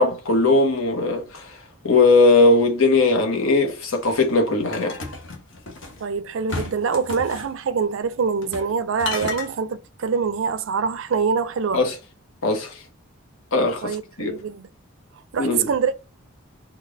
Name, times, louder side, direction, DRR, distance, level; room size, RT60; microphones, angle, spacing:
voice 1, 0.0-1.5 1.8-5.0 11.7-11.9 12.4-12.8 13.5-14.3 15.4-15.7, left 3 dB, 80° left, 1.0 m, -19 dB
sound 1, 4.7-6.0 6.5-7.5 8.4-8.7 9.0-9.5, left 4 dB, 60° left, 0.9 m, -32 dB
voice 2, 6.0-11.8 13.8-14.7 15.3-15.9, right 5 dB, 65° right, 0.4 m, -24 dB
4.0 x 2.3 x 3.4 m
head